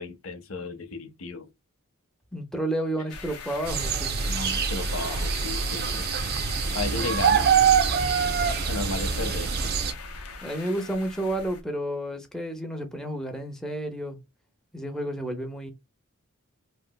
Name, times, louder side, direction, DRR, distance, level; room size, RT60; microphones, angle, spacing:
voice 1, 0.0-1.5 4.3-6.1 6.7-7.5 7.8-7.9 8.2-9.5, left 3 dB, 65° left, 0.6 m, -34 dB
voice 2, 2.3-4.1 10.4-14.2 14.7-15.7, right 1 dB, 5° left, 0.6 m, -31 dB
sound 1, 3.1-11.6, left 5 dB, 90° left, 0.9 m, -41 dB
sound 2, 3.6-9.9, right 6 dB, 45° right, 0.5 m, -25 dB
3.1 x 2.9 x 2.2 m
head